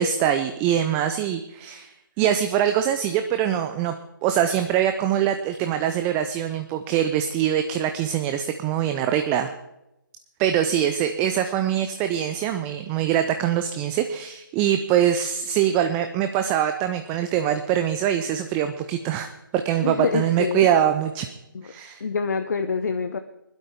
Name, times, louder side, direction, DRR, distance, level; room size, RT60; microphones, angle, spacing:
voice 1, 0.0-3.9 4.2-9.5 10.4-21.3 21.6-22.0, right 10 dB, 10° right, 8 dB, 0.4 m, -23 dB
voice 2, 19.8-20.7 21.5-21.7 22.0-23.2, left 5 dB, 50° left, 8 dB, 0.9 m, -26 dB
20.0 x 12.0 x 3.6 m, 0.89 s
figure-of-eight pair, 145°, 11 cm